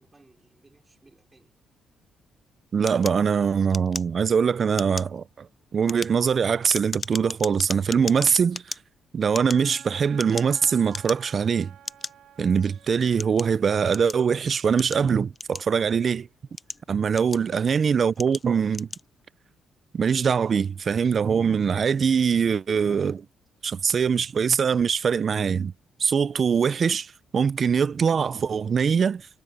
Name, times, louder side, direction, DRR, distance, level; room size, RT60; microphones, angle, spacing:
voice 1, 0.0-1.5, right 2 dB, 20° right, 5.2 m, -60 dB
voice 2, 2.7-5.5 5.7-8.8 9.1-11.7 12.4-16.3 16.9-18.9 19.9-23.3 23.6-25.7 26.0-29.3, right 6 dB, 45° right, 0.5 m, -23 dB
sound 1, 2.9-4.4 4.7-5.2 5.7-8.8 9.3-10.6 10.9-11.4 11.9-12.1 12.8-14.3 14.8-16.0 16.4-17.6 18.2-18.5 18.7-19.1, left 4 dB, 30° left, 0.6 m, -36 dB
Wind instrument woodwind instrument, 9.5-13.4, right 11 dB, 75° right, 6.6 m, -50 dB
cardioid pair, 90°, 0 cm